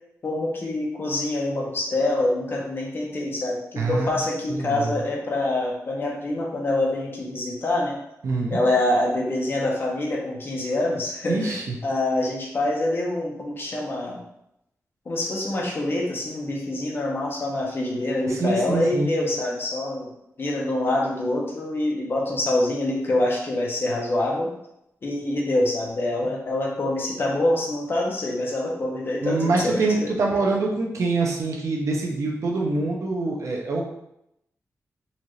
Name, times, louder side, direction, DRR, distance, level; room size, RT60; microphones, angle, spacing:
voice 1, 0.2-8.0 8.5-11.6 11.8-14.2 15.1-20.1 20.4-24.5 25.0-30.1, left 1 dB, 40° left, -2 dB, 0.8 m, -25 dB
voice 2, 3.8-4.1 4.5-4.9 8.2-8.6 11.3-11.6 18.3-19.1 29.2-33.8, right 3 dB, 65° right, -1 dB, 0.7 m, -25 dB
4.1 x 2.6 x 3.1 m, 0.81 s
wide cardioid pair, 170°, 6 cm